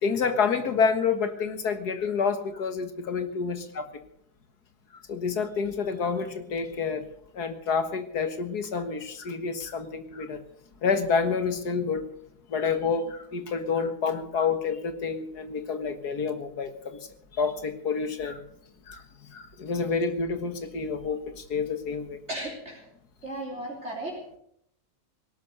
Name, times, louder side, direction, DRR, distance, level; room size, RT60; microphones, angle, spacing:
voice 1, 0.0-3.8 5.1-7.0 7.3-10.4 10.8-12.0 12.5-17.0 17.4-18.4 18.9-22.2, left 5 dB, 80° left, 9 dB, 2.2 m, -28 dB
voice 2, 22.3-22.9 23.2-24.4, right 1 dB, 45° right, -3 dB, 3.8 m, -35 dB
18.0 x 12.0 x 6.6 m, 0.70 s
omnidirectional pair, 1.7 m